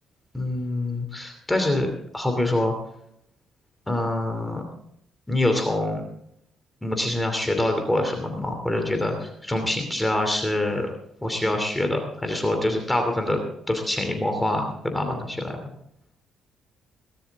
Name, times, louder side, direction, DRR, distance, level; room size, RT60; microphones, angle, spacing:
voice 1, 0.3-2.7 3.9-4.6 5.3-6.0 6.8-10.9 11.2-13.4 13.7-15.6, left 1 dB, 10° left, 4 dB, 2.8 m, -25 dB
18.5 x 12.5 x 3.6 m, 0.72 s
cardioid pair, 90°, 0 cm